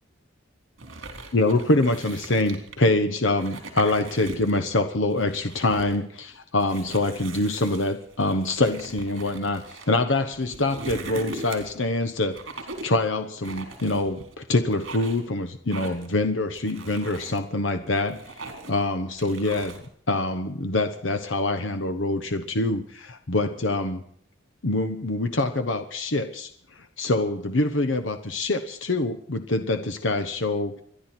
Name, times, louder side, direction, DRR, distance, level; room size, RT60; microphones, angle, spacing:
sound 1, 0.8-2.9 3.3-4.7 5.0-6.0 6.6-9.9 10.3-11.8 12.3-13.0 13.4-14.3 14.7-15.3 15.7-16.1 16.6-17.4 17.9-18.8 19.2-19.9, right 2 dB, 75° right, 4.3 m, -40 dB
voice 1, 1.3-12.4 12.8-24.0 24.6-30.8, left 2 dB, 70° left, 7 dB, 1.1 m, -25 dB
29.5 x 11.0 x 4.4 m, 0.63 s
head